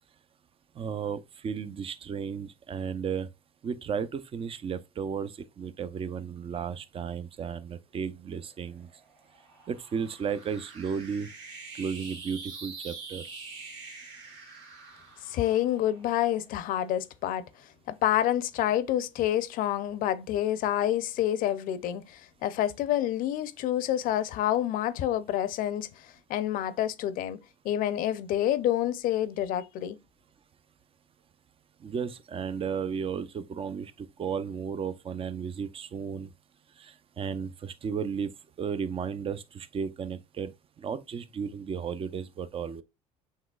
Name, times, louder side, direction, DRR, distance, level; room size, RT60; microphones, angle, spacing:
voice 1, 0.8-3.3 3.6-8.9 9.7-11.3 11.7-13.2 31.8-36.3 36.8-38.3 38.6-40.5 40.8-42.8, right 6 dB, 35° right, 0.6 m, -34 dB
sound 1, 8.4-17.1, right 4 dB, 80° right, 1.6 m, -46 dB
voice 2, 15.2-17.5 17.9-27.4 27.6-30.0, left 12 dB, 65° left, 0.6 m, -28 dB
7.4 x 3.1 x 2.3 m
supercardioid pair, 80°, 16 cm